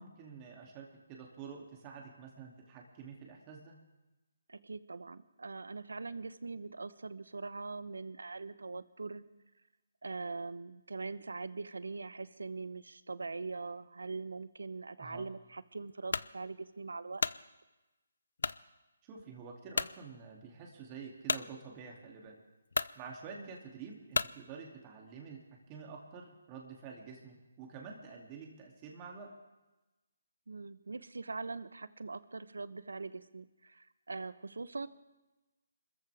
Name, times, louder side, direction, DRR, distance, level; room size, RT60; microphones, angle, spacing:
voice 1, 0.0-3.8 15.0-15.3 19.0-22.4 23.0-25.4 25.7-29.3, right 5 dB, 25° right, 0 dB, 2.6 m, -48 dB
voice 2, 4.5-9.3 10.0-17.2 23.4-23.5 30.5-34.9, right 3 dB, 80° right, 15 dB, 0.9 m, -42 dB
sound 1, 16.1-16.3 16.9-17.4 18.4-18.6 19.2-19.3 19.7-20.0 21.3-21.5 22.3-22.4 22.7-23.0 24.1-24.4, left 4 dB, 70° left, 0.4 m, -33 dB
26.5 x 14.0 x 3.5 m, 1.1 s
figure-of-eight pair, 150°, 0 cm